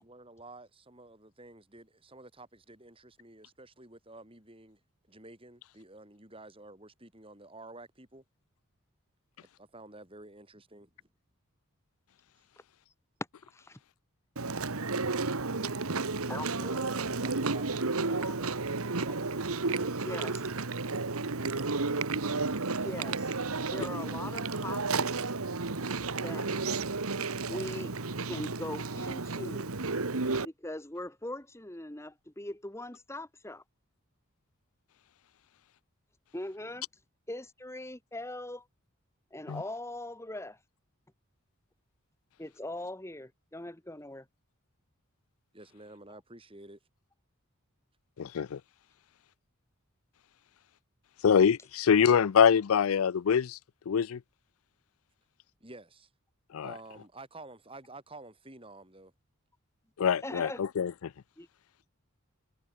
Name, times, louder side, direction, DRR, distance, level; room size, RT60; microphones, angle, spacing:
voice 1, 0.0-4.8 5.1-8.2 9.6-11.1 16.6-18.6 18.9-19.6 45.5-46.8 55.6-56.1 56.6-59.1, right 2 dB, 25° right, 5.1 m, -50 dB
voice 2, 13.5-13.8 16.3-16.5 18.2-18.3 20.0-20.5 22.8-23.4 23.7-25.3 26.2-26.5 27.5-27.9 28.2-29.7 30.4-33.6 36.3-36.8 37.3-38.7 39.3-40.6 42.4-44.2 52.1-52.3 60.2-60.6 61.4-61.5, left 1 dB, 10° left, 1.4 m, -41 dB
Chewing mastication, 14.4-30.5, right 3 dB, 80° right, 1.5 m, -32 dB
voice 3, 48.2-48.6 51.2-53.6 53.9-54.2 56.5-56.7 60.0-60.9, left 7 dB, 75° left, 0.4 m, -24 dB
head